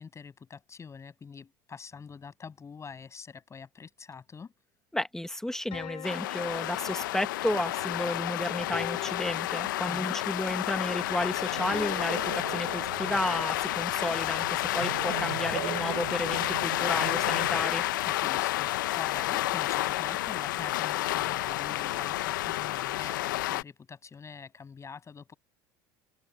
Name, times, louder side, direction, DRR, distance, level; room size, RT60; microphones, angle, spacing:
voice 1, 0.0-4.5 9.9-10.2 18.0-25.3, left 5 dB, 30° left, 7.8 m, -45 dB
voice 2, 4.9-17.8, left 1 dB, 5° left, 2.1 m, -32 dB
sound 1, 5.7-7.5 8.7-10.1 11.7-12.0, left 15 dB, 55° left, 7.0 m, -42 dB
sound 2, 6.0-23.6, left 16 dB, 80° left, 0.9 m, -30 dB
sound 3, 11.0-17.7, right 16 dB, 80° right, 7.7 m, -40 dB
hypercardioid pair, 80°, 11 cm